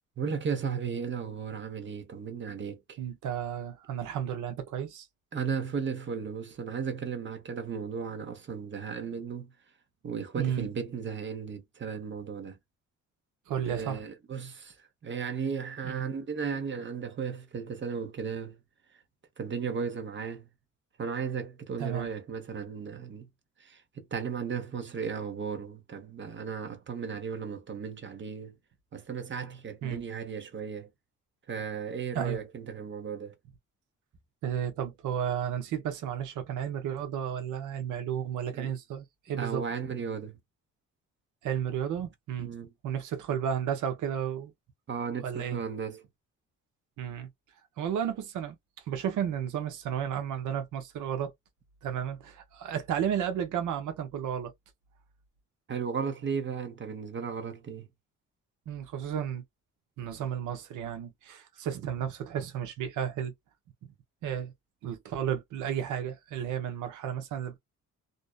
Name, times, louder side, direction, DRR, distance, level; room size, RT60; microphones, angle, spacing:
voice 1, 0.2-3.0 5.3-9.5 10.0-12.6 13.6-14.7 15.0-18.6 19.4-20.5 21.0-23.3 23.6-28.5 28.9-30.9 31.5-33.3 38.5-38.7 39.4-40.4 42.4-42.7 44.9-46.0 55.7-57.9, right 6 dB, 40° right, 0.8 m, -35 dB
voice 2, 3.0-5.1 10.4-10.7 13.5-14.0 15.8-16.0 21.8-22.1 29.8-30.0 32.1-32.4 34.4-39.6 41.4-42.5 42.8-44.5 45.2-45.6 47.0-47.3 47.8-48.5 48.9-51.3 51.8-54.5 58.7-59.4 60.0-63.3 64.2-64.5 64.8-67.6, right 9 dB, 85° right, 0.8 m, -33 dB
2.6 x 2.0 x 2.3 m
cardioid pair, 90°, 30 cm